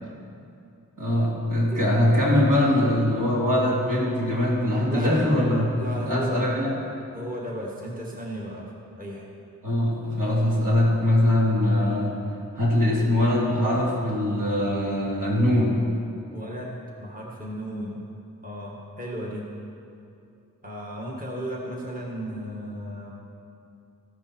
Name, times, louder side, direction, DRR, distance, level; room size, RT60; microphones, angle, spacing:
voice 1, 1.0-5.7 6.1-6.7 9.6-12.2 12.6-15.8, left 1 dB, 70° right, -5 dB, 3.1 m, -22 dB
voice 2, 4.9-5.2 5.8-6.4 7.1-8.7 9.0-9.3 16.3-18.0 18.4-19.5 20.6-23.1, equal, 25° right, -3 dB, 1.8 m, -34 dB
14.5 x 10.5 x 4.5 m, 2.6 s
wide cardioid pair, 70°, 33 cm